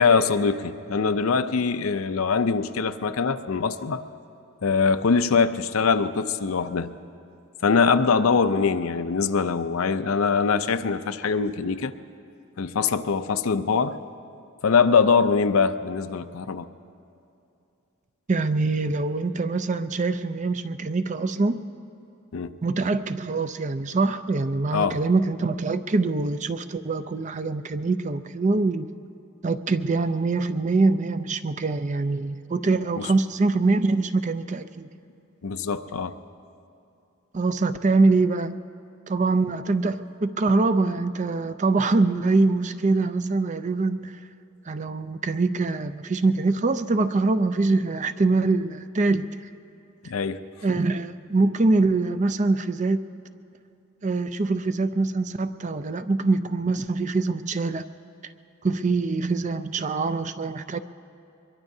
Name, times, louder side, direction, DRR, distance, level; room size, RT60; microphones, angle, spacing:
voice 1, 0.0-4.0 4.6-6.9 7.6-11.9 12.6-14.0 14.6-16.7 22.3-22.5 24.7-25.0 35.4-36.1 50.0-50.4, left 5 dB, 80° left, 11 dB, 0.6 m, -22 dB
voice 2, 18.3-21.6 22.6-28.9 29.4-34.9 37.3-38.6 39.1-44.2 44.7-49.3 50.6-53.1 54.0-57.9 58.2-58.3 58.6-60.8, right 3 dB, 35° right, 11 dB, 0.5 m, -24 dB
23.5 x 22.0 x 2.7 m, 2.6 s
head